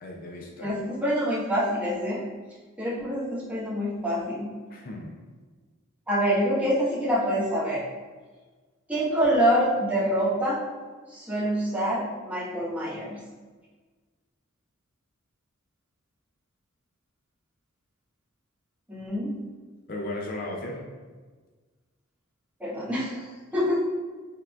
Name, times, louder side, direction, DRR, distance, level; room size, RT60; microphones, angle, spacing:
voice 1, 0.0-0.7 4.7-5.2 19.9-20.9, left 1 dB, 45° left, 0 dB, 0.5 m, -35 dB
voice 2, 0.6-2.2 2.8-4.5 6.1-7.8 8.9-10.6 11.1-13.2 18.9-19.4 22.6-23.7, equal, 5° right, -10 dB, 1.4 m, -26 dB
5.6 x 3.6 x 2.4 m, 1.4 s
head